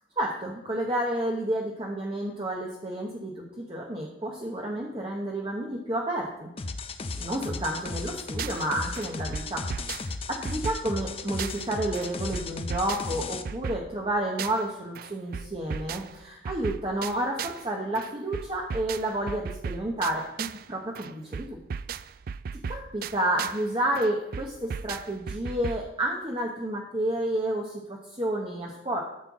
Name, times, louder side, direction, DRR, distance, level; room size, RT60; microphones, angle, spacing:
voice 1, 0.2-6.5 7.2-9.6 10.3-21.6 22.7-29.0, right 1 dB, 30° right, -1 dB, 1.1 m, -30 dB
sound 1, 6.6-13.4, left 3 dB, 30° left, 0.5 m, -35 dB
sound 2, 7.8-8.7 8.9-11.7 11.9-14.7 14.9-17.7 17.9-20.7 20.9-23.7 23.9-25.9, right 6 dB, 50° right, 0.3 m, -37 dB
12.5 x 4.5 x 7.2 m, 0.89 s
head